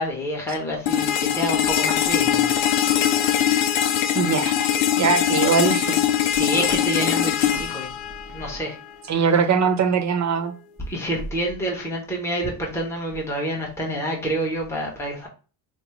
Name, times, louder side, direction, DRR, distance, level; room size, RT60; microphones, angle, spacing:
voice 1, 0.0-2.6 6.3-7.9 8.3-8.7 10.9-15.3, equal, 5° left, 0.9 m, -27 dB
sound 1, 0.9-8.8, left 10 dB, 85° left, 0.6 m, -22 dB
voice 2, 4.1-4.5 5.0-6.0 9.1-10.5, right 6 dB, 40° right, 0.8 m, -21 dB
5.1 x 2.1 x 3.0 m
cardioid pair, 140°, 45 cm